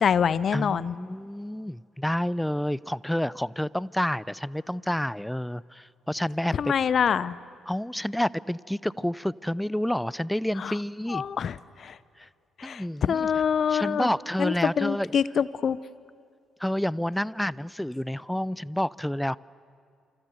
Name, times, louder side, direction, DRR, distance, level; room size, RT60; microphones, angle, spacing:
voice 1, 0.0-0.9 6.6-7.4 10.6-10.7 11.1-12.0 12.6-14.1 14.4-15.8, left 7 dB, 55° left, 19 dB, 0.8 m, -25 dB
voice 2, 0.5-6.7 7.7-11.2 12.2-12.3 12.6-13.3 13.7-15.1 16.6-19.4, equal, 5° left, 21 dB, 0.6 m, -29 dB
28.5 x 26.5 x 8.0 m, 2.3 s
figure-of-eight pair, 40°, 0 cm